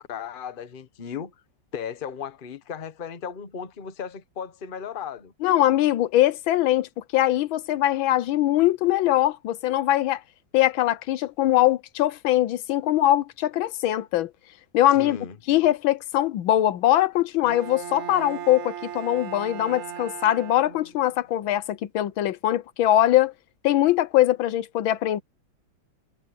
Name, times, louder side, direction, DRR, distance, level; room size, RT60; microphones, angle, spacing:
voice 1, 0.1-1.3 1.7-5.3 14.9-15.4, left 7 dB, 35° left, 1.0 m, -36 dB
voice 2, 5.4-10.2 10.5-14.3 14.7-15.2 15.5-23.3 23.6-25.2, left 13 dB, 85° left, 1.6 m, -22 dB
Bowed string instrument, 17.4-21.2, right 10 dB, 65° right, 0.7 m, -37 dB
omnidirectional pair, 2.1 m